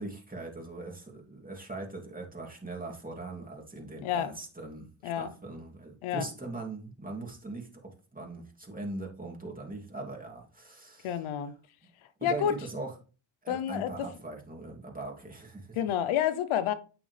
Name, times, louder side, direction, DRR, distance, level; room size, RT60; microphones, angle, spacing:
voice 1, 0.0-11.5 11.8-11.9 12.2-12.9 13.4-15.8, right 2 dB, 15° right, 2.9 m, -41 dB
voice 2, 4.0-4.3 5.0-5.3 6.0-6.3 11.0-11.5 12.2-12.5 13.5-14.1 15.8-16.7, left 9 dB, 90° left, 0.9 m, -29 dB
9.0 x 6.1 x 3.4 m
supercardioid pair, 50°, 48 cm